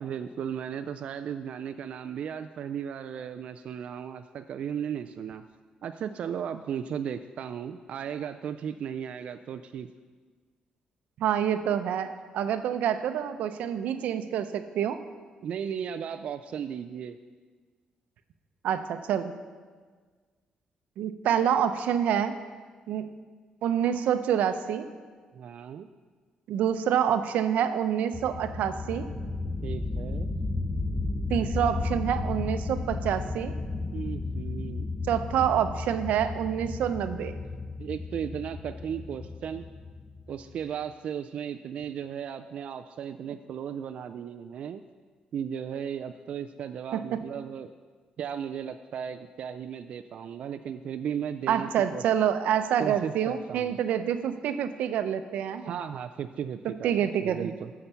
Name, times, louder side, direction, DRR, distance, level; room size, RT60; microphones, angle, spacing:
voice 1, 0.0-5.4 5.8-9.9 15.4-17.2 25.3-25.9 29.6-30.3 33.9-34.9 37.8-39.6 40.3-44.8 45.3-47.7 48.2-52.0 52.8-53.8 55.6-57.7, right 8 dB, 55° right, 9 dB, 0.3 m, -35 dB
voice 2, 11.2-15.0 18.6-19.3 21.0-22.4 22.9-23.1 23.6-24.8 26.5-29.1 31.3-33.5 35.1-37.4 46.9-47.0 51.5-55.8 56.6-57.5, right 9 dB, 85° right, 10 dB, 0.6 m, -27 dB
sound 1, 28.1-40.5, left 3 dB, 5° left, 0.7 m, -33 dB
14.0 x 5.9 x 5.6 m, 1.5 s
cardioid pair, 165°, 2 cm